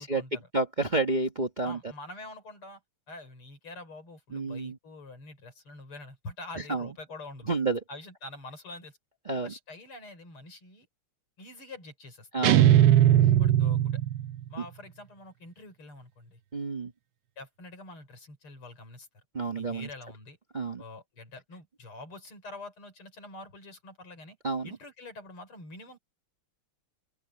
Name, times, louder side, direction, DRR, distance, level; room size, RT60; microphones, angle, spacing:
voice 1, 0.0-0.4 1.6-2.8 3.1-7.6 7.9-9.0 9.4-10.9 11.4-12.5 13.4-14.0 14.5-16.4 17.4-19.1 19.6-20.4 20.8-24.4 24.6-26.0, left 2 dB, 75° left, 6.3 m, -46 dB
voice 2, 0.5-1.8 4.3-4.8 6.7-6.9 7.5-7.8 9.3-9.5 12.3-12.7 14.6-14.7 16.5-16.9 19.3-19.9 20.5-20.8 24.4-24.8, right 3 dB, 25° right, 1.2 m, -29 dB
sound 1, 12.4-14.5, right 12 dB, 70° right, 1.1 m, -20 dB
open air
omnidirectional pair, 2.4 m